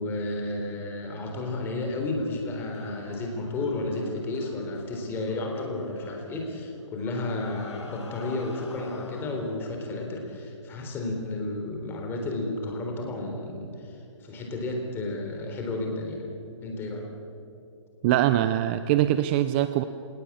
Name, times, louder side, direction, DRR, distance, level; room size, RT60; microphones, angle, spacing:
voice 1, 0.0-16.3 16.6-17.1, left 2 dB, 15° left, 2 dB, 4.0 m, -32 dB
sound 1, 2.6-9.6, left 2 dB, 65° left, 5.5 m, -49 dB
voice 2, 18.0-19.8, right 12 dB, 20° right, 11 dB, 0.5 m, -23 dB
29.0 x 17.5 x 8.7 m, 2.6 s
hypercardioid pair, 160°, 16 cm